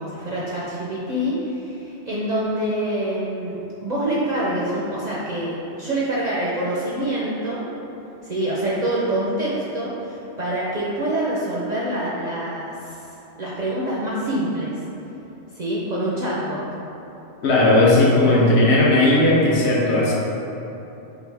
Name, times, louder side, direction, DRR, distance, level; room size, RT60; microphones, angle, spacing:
voice 1, 0.0-7.6 8.2-13.1 13.4-14.7 15.5-16.6, right 1 dB, 50° right, -7 dB, 0.5 m, -26 dB
voice 2, 17.4-20.1, left 2 dB, 65° left, -5 dB, 1.0 m, -16 dB
4.5 x 2.5 x 3.3 m, 3.0 s
omnidirectional pair, 1.2 m